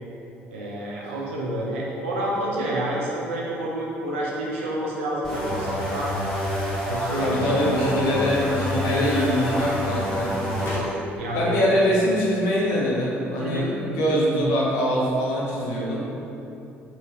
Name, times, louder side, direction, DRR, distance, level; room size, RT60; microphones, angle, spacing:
voice 1, 0.5-6.1 6.8-7.5 7.8-8.2 11.1-11.6 13.4-13.7, right 1 dB, 80° right, -4 dB, 0.5 m, -29 dB
sound 1, 5.2-10.8, equal, 5° left, 1.3 m, -27 dB
sound 2, 6.6-11.3, left 2 dB, 40° left, 1.0 m, -37 dB
voice 2, 7.2-10.6 11.3-16.0, equal, 70° left, -5 dB, 0.6 m, -23 dB
2.8 x 2.7 x 3.1 m, 2.9 s
figure-of-eight pair, 50°, 7 cm